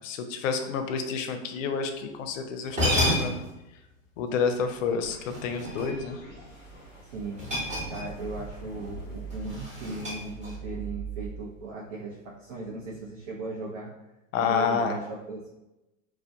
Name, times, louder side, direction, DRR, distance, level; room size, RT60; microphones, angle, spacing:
voice 1, 0.0-3.4 4.2-5.2 5.4-6.2 14.3-14.9, left 5 dB, 70° left, 7 dB, 0.5 m, -29 dB
sound 1, 2.3-2.4 2.7-3.6 5.3-6.2 7.4-8.3 8.6-8.8 9.3-10.7, equal, 15° right, 0.9 m, -30 dB
sound 2, 4.5-11.3, right 4 dB, 25° left, 1.0 m, -42 dB
voice 2, 7.9-13.9 14.4-15.5, right 2 dB, 65° right, -4 dB, 0.7 m, -37 dB
2.2 x 2.2 x 2.7 m, 0.97 s
hypercardioid pair, 130°, 41 cm